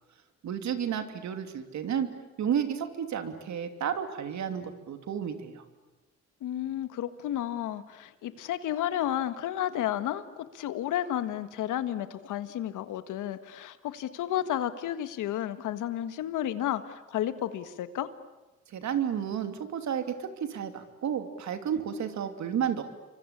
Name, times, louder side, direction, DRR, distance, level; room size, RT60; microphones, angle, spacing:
voice 1, 0.4-2.1 2.4-5.6 18.7-22.8, right 8 dB, 65° right, 8 dB, 2.9 m, -32 dB
voice 2, 6.4-18.1, left 11 dB, 85° left, 12 dB, 1.6 m, -32 dB
28.5 x 24.5 x 8.5 m, 1.1 s
cardioid pair, 90°, 30 cm